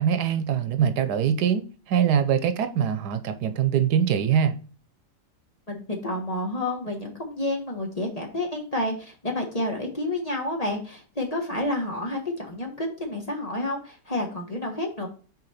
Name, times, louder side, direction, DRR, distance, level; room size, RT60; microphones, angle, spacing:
voice 1, 0.0-4.5, right 8 dB, 90° right, 1.3 m, -23 dB
voice 2, 5.7-15.1, left 1 dB, 25° left, 1.3 m, -29 dB
6.8 x 4.5 x 4.3 m
omnidirectional pair, 1.7 m